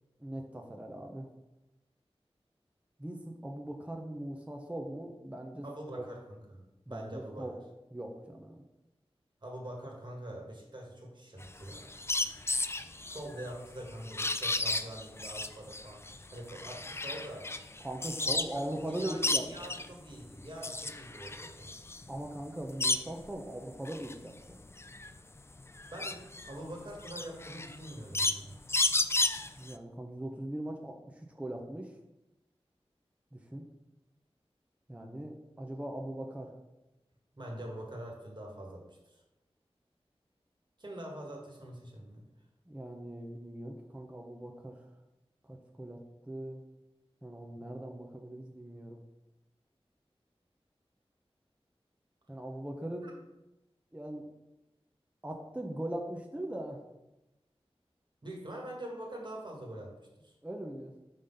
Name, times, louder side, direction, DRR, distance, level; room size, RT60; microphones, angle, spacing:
voice 1, 0.2-1.3 3.0-5.6 5.9-6.0 6.9-7.6 7.9-8.6 17.8-19.7 22.1-24.6 29.6-31.9 33.3-33.7 34.9-36.5 42.7-44.8 45.5-46.6 47.2-49.0 52.3-53.1 53.9-54.3 55.2-56.8 60.4-61.0, right 1 dB, 10° right, 2 dB, 0.7 m, -40 dB
voice 2, 5.6-7.6 9.4-12.0 13.1-16.0 16.3-17.5 18.2-18.4 18.8-21.7 25.9-28.6 37.3-39.2 40.8-42.2 53.0-53.1 58.2-60.3, right 1 dB, 45° right, -1 dB, 1.6 m, -44 dB
sound 1, 11.4-18.6 18.9-19.9 20.4-23.3 23.8-29.7, left 2 dB, 25° left, 0.3 m, -33 dB
5.1 x 3.7 x 5.5 m, 0.96 s
wide cardioid pair, 55°, 11 cm